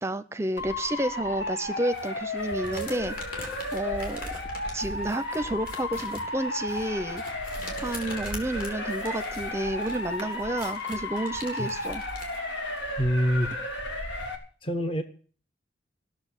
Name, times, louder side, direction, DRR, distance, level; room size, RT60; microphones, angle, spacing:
voice 1, 0.0-4.3 4.7-7.2 7.8-12.0, right 1 dB, 15° right, 13 dB, 0.7 m, -31 dB
Motor vehicle (road) / Siren, 0.6-14.4, left 1 dB, 80° left, 2.8 m, -34 dB
sound 1, 1.9-12.4, left 2 dB, 50° left, 3.8 m, -44 dB
voice 2, 13.0-13.5 14.6-15.0, equal, 30° left, 7 dB, 0.9 m, -25 dB
15.5 x 6.8 x 9.9 m, 0.42 s
head